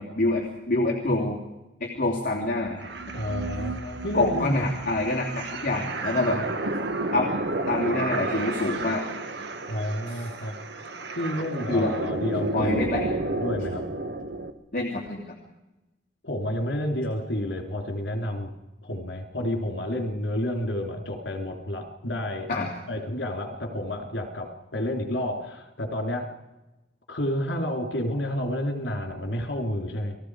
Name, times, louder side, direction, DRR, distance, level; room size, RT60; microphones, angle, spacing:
voice 1, 0.0-1.4 1.8-2.9 4.1-6.4 7.1-7.3 7.7-9.0 10.1-10.2 11.7-11.9 12.5-13.1 14.7-15.3 22.5-22.7, left 2 dB, 45° left, 0 dB, 2.9 m, -26 dB
sound 1, 2.8-14.5, right 2 dB, 60° right, 1.4 m, -31 dB
voice 2, 3.1-4.6 6.2-6.4 9.7-10.6 11.2-12.9 13.4-13.9 16.2-18.5 18.8-22.5 22.9-26.3 27.1-30.2, left 1 dB, 70° left, 4 dB, 3.6 m, -30 dB
30.0 x 20.5 x 5.0 m, 1.0 s
head